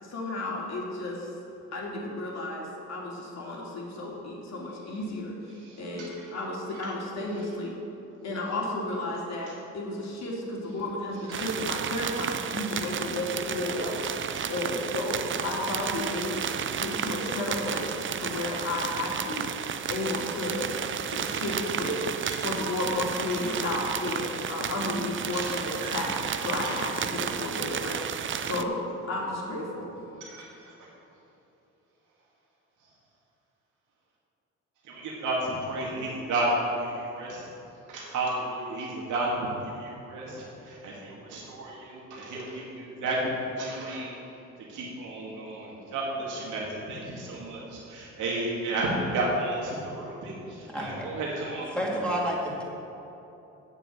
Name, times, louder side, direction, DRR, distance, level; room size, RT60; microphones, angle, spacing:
voice 1, 0.0-1.3 1.7-5.3 5.8-7.7 8.2-14.0 14.5-16.4 16.7-19.5 19.9-20.7 21.1-22.1 22.4-28.7 29.1-29.9, left 2 dB, 60° left, -3 dB, 2.7 m, -32 dB
voice 2, 5.5-6.4 6.7-6.9 11.3-11.4 12.7-12.8 14.3-14.4 22.2-22.3 23.3-23.5 25.3-25.5 25.8-25.9 26.6-26.7 30.2-30.9 34.8-37.5 37.9-44.1 44.7-51.8, right 2 dB, 80° right, -4 dB, 2.3 m, -32 dB
sound 1, 11.3-28.6, right 8 dB, 40° right, 0.5 m, -32 dB
voice 3, 50.7-51.1 51.7-52.6, equal, 5° left, -3 dB, 2.5 m, -29 dB
8.0 x 7.5 x 7.6 m, 3.0 s
cardioid pair, 90°, 30 cm